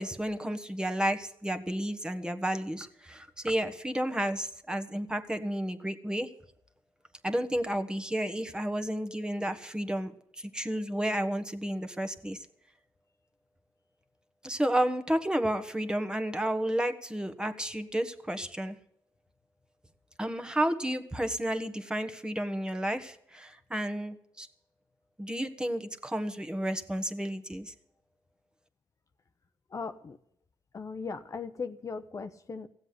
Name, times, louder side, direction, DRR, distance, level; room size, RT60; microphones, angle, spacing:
voice 1, 0.0-6.3 7.2-10.1 10.4-12.4 14.4-18.8 20.2-24.5 25.2-27.7, right 1 dB, 10° right, 7 dB, 1.5 m, -31 dB
voice 2, 29.7-30.2 30.7-32.7, left 4 dB, 40° left, 8 dB, 1.0 m, -38 dB
16.0 x 7.8 x 9.5 m, 0.72 s
cardioid pair, 75°, 8 cm